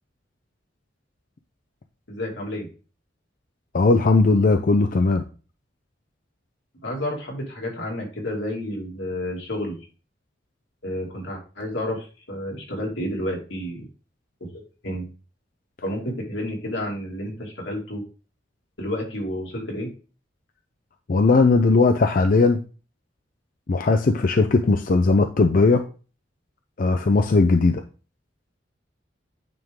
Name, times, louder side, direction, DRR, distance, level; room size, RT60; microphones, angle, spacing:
voice 1, 2.1-2.7 6.8-9.8 10.8-13.9 14.4-15.1 15.8-18.0 18.8-19.9, left 1 dB, 85° left, -1 dB, 2.6 m, -30 dB
voice 2, 3.7-5.2 21.1-22.6 23.7-25.8 26.8-27.8, left 3 dB, 50° left, 6 dB, 0.5 m, -18 dB
9.0 x 3.6 x 3.7 m, 0.35 s
head